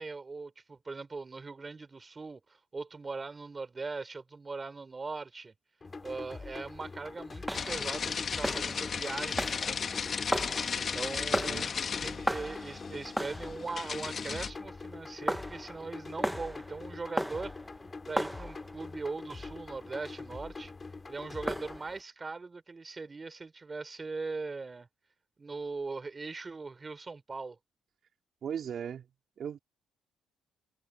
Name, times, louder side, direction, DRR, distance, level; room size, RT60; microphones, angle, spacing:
voice 1, 0.0-5.5 6.0-9.9 10.7-17.5 18.1-20.7 21.1-24.9 25.4-27.6, right 4 dB, 30° right, 3.9 m, -40 dB
sound 1, 5.8-21.8, left 4 dB, 30° left, 4.9 m, -44 dB
sound 2, 5.9-22.0, equal, 5° right, 2.0 m, -38 dB
sound 3, 7.5-14.5, left 6 dB, 45° left, 2.4 m, -35 dB
voice 2, 28.4-29.0 29.4-29.6, right 8 dB, 60° right, 3.2 m, -37 dB
cardioid pair, 90°, 0 cm